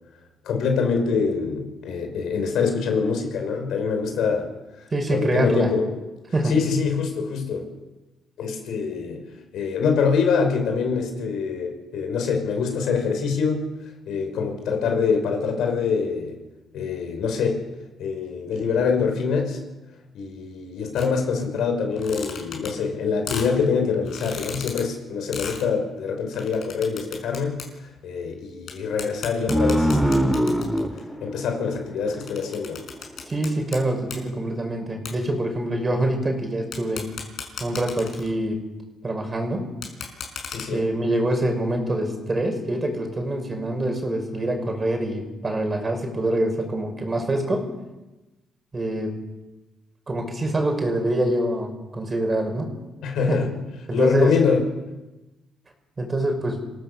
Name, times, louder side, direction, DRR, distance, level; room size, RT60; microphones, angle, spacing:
voice 1, 0.4-4.5 5.1-5.9 6.4-7.7 8.4-9.2 9.5-13.7 14.1-16.4 16.7-17.6 18.0-19.6 20.1-27.6 28.0-30.7 31.2-32.8 40.5-40.9 53.0-53.5 53.9-54.7, left 5 dB, 80° left, 4 dB, 5.6 m, -24 dB
voice 2, 4.9-5.7 6.3-6.5 33.3-37.1 37.6-38.6 39.0-39.7 40.7-47.7 48.7-49.1 50.1-52.8 53.3-53.4 53.9-54.4 56.0-56.6, right 1 dB, 30° right, 4 dB, 6.0 m, -25 dB
sound 1, 21.0-21.1 21.9-22.9 23.3-23.5 24.0-24.8 25.3-25.6 26.3-27.6 28.0-28.1 28.7-28.8 29.0-31.0 31.7-33.8 34.0-34.2 35.0-35.1 36.7-38.4 39.7-40.6, left 6 dB, 65° left, 6.0 m, -35 dB
sound 2, 29.5-32.6, equal, ahead, 2.0 m, -23 dB
27.0 x 17.0 x 7.1 m, 1.1 s
cardioid pair, 90°, 0 cm